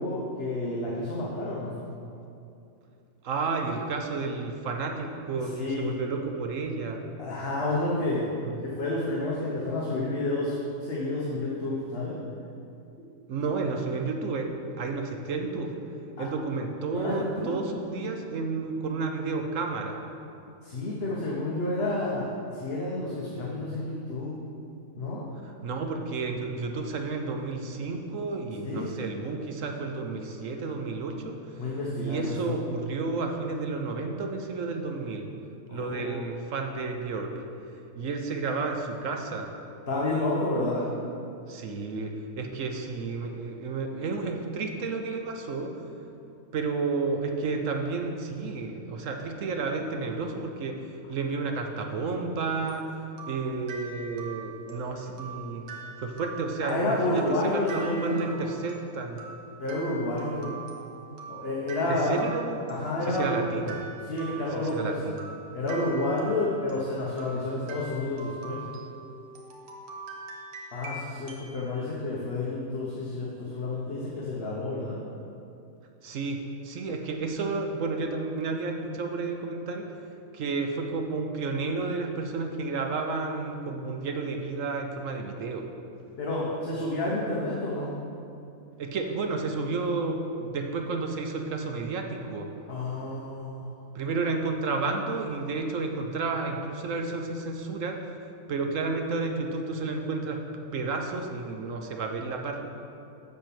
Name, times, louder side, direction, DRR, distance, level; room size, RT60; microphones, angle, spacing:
voice 1, 0.0-1.7 5.5-5.9 7.2-8.3 8.6-10.6 10.8-12.2 16.2-16.3 16.9-17.5 20.6-24.4 25.0-25.2 28.6-28.9 31.5-32.5 35.7-36.2 39.9-40.9 56.6-58.5 59.6-60.5 61.3-62.2 62.7-63.4 64.0-65.0 65.5-68.6 70.7-75.0 86.2-87.9 92.7-93.7, left 2 dB, 45° left, -5 dB, 1.3 m, -30 dB
voice 2, 3.2-7.0 8.4-8.5 13.3-14.5 14.8-15.7 16.2-20.0 25.4-31.6 32.0-35.3 35.7-37.3 38.0-39.5 41.5-45.8 46.5-50.8 51.1-52.9 53.3-55.6 56.0-59.2 61.9-62.6 63.1-63.8 64.6-65.2 76.0-76.4 76.6-79.9 80.3-85.7 88.8-92.5 93.9-98.0 98.5-100.4 100.7-102.6, right 4 dB, 65° right, 4 dB, 1.1 m, -31 dB
sound 1, 52.7-71.6, right 4 dB, 85° right, 1.5 m, -43 dB
7.6 x 7.0 x 5.9 m, 2.6 s
omnidirectional pair, 1.5 m